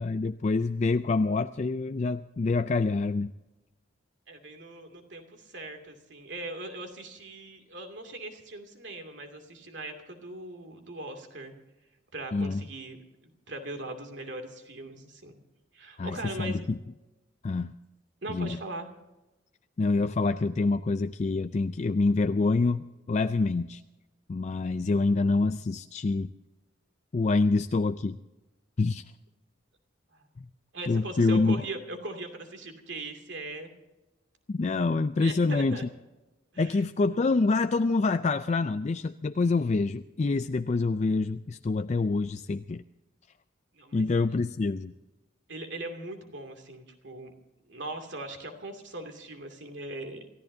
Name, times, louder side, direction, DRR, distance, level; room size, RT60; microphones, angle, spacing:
voice 1, 0.0-3.3 12.3-12.6 16.0-16.8 17.4-17.7 18.3-18.6 19.8-23.8 24.3-26.3 27.1-28.2 28.8-29.0 30.4-30.5 30.9-31.6 34.5-35.8 36.6-42.8 43.9-44.9, left 3 dB, 40° left, 9 dB, 0.4 m, -26 dB
voice 2, 4.3-11.5 12.1-13.0 13.2-15.4 15.7-16.6 18.2-18.9 30.1-30.3 30.7-33.7 35.2-35.8 36.5-36.8 43.7-44.1 45.5-47.3 47.6-50.3, right 2 dB, 70° right, 5 dB, 2.6 m, -40 dB
28.5 x 14.5 x 2.8 m, 1.1 s
head